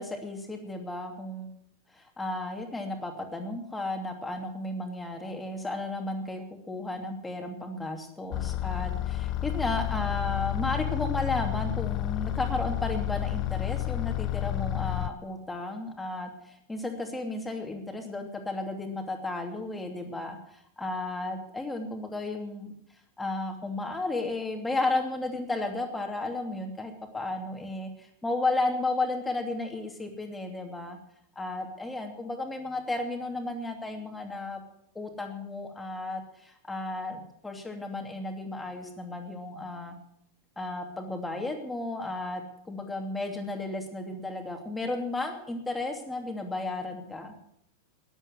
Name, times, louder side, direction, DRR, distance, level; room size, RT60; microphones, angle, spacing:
voice 1, 0.0-1.6 1.9-22.7 23.2-31.0 31.4-34.6 34.9-40.0 40.6-47.3, left 2 dB, 10° left, 4 dB, 2.7 m, -33 dB
sound 1, 8.3-15.1, left 14 dB, 35° left, 0.5 m, -30 dB
13.5 x 11.0 x 8.1 m, 0.73 s
figure-of-eight pair, 90°, 0 cm